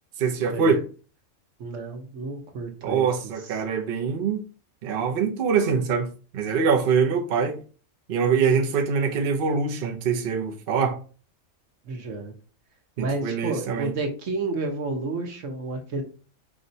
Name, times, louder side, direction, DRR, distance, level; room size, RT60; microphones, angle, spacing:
voice 1, 0.2-0.8 2.8-4.5 4.8-7.6 8.1-11.0 13.0-13.9, right 6 dB, 50° right, 0.8 m, -24 dB
voice 2, 1.6-3.1 11.9-12.3 13.0-16.0, right 3 dB, 70° right, 1.2 m, -31 dB
4.8 x 3.2 x 2.7 m
omnidirectional pair, 1.3 m